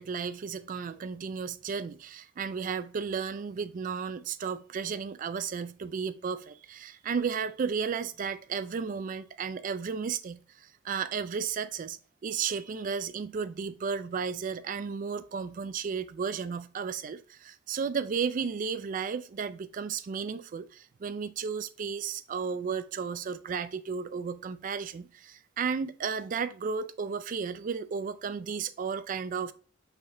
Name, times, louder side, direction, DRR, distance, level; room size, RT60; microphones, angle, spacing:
voice 1, 0.0-29.5, right 6 dB, 45° right, 0.3 m, -34 dB
5.6 x 3.5 x 2.5 m
head